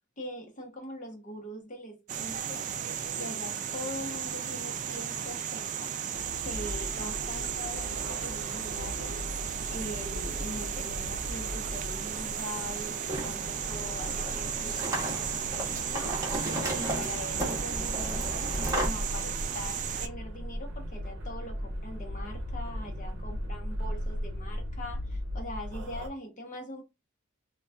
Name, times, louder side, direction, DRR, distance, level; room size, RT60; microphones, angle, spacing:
voice 1, 0.2-2.7 3.1-6.0 6.4-9.1 9.7-16.2 16.6-26.8, left 1 dB, 40° left, 0.9 m, -42 dB
sound 1, 2.1-20.1, right 8 dB, 35° right, 0.3 m, -35 dB
sound 2, 6.1-26.1, equal, 60° right, 0.7 m, -38 dB
sound 3, 12.4-18.9, right 1 dB, 15° right, 1.0 m, -35 dB
3.8 x 2.3 x 2.3 m
head